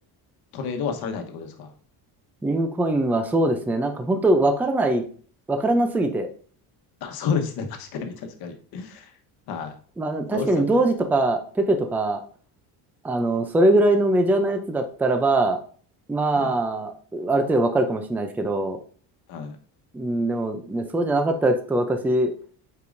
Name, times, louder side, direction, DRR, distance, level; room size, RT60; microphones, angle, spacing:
voice 1, 0.5-1.7 7.0-9.1 9.5-9.7 10.3-10.8 16.3-16.6 19.3-19.6, left 6 dB, 60° left, 5 dB, 1.2 m, -30 dB
voice 2, 2.4-5.0 5.5-6.3 10.0-12.2 13.0-15.6 16.1-18.8 19.9-22.3, right 2 dB, 5° right, 6 dB, 0.4 m, -22 dB
8.2 x 4.7 x 2.6 m, 0.44 s
cardioid pair, 155°, 42 cm